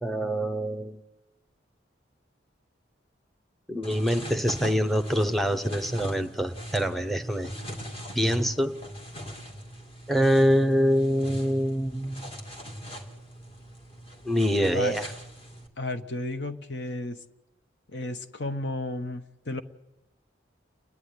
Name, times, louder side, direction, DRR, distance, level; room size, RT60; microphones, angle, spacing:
voice 1, 0.0-1.0 3.7-7.5 8.2-8.7 10.1-12.3 14.3-15.1, equal, ahead, 8 dB, 0.8 m, -25 dB
sound 1, 3.8-15.7, equal, 30° left, 2.3 m, -40 dB
voice 2, 15.8-17.2 17.9-19.6, left 2 dB, 70° left, 8 dB, 1.2 m, -33 dB
29.0 x 10.5 x 9.8 m, 0.95 s
head